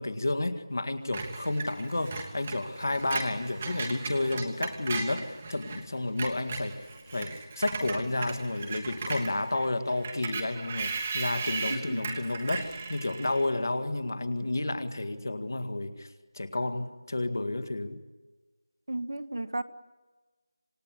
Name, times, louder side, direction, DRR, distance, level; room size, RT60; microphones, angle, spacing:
voice 1, 0.0-18.0, left 2 dB, 50° left, 9 dB, 1.9 m, -31 dB
Screech, 1.1-5.8 6.1-13.5, right 4 dB, 15° right, 1.2 m, -37 dB
sound 1, 1.9-7.3, left 1 dB, 80° left, 7.2 m, -54 dB
voice 2, 11.7-12.0 18.9-19.6, right 2 dB, 55° right, 10 dB, 1.3 m, -34 dB
26.5 x 19.0 x 9.8 m, 1.2 s
figure-of-eight pair, 180°, 2 cm